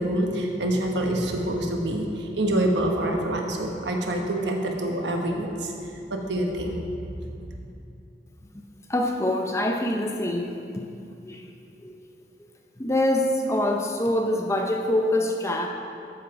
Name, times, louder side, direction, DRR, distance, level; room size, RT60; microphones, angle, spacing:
voice 1, 0.0-5.7 6.1-6.8, right 1 dB, 80° right, 2 dB, 1.2 m, -26 dB
voice 2, 8.9-10.8 11.2-11.5 11.8-11.9 12.8-15.7, left 1 dB, 15° left, 3 dB, 0.6 m, -25 dB
13.0 x 5.8 x 4.8 m, 2.6 s
head